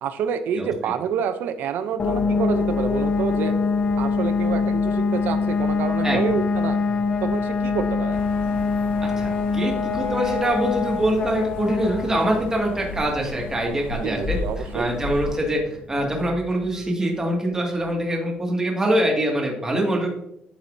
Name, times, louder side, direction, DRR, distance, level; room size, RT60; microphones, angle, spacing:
voice 1, 0.0-3.6 4.0-6.8 7.2-8.2 14.0-14.9, right 7 dB, 75° right, 11 dB, 0.5 m, -28 dB
sound 1, 2.0-16.6, left 4 dB, 35° left, 0.6 m, -25 dB
sound 2, 8.1-15.4, left 2 dB, 85° left, 1.3 m, -35 dB
voice 2, 9.0-14.4 14.7-15.6 15.9-20.2, right 1 dB, 15° right, -1 dB, 1.9 m, -24 dB
11.5 x 4.2 x 2.6 m, 0.76 s
cardioid pair, 125°, 3 cm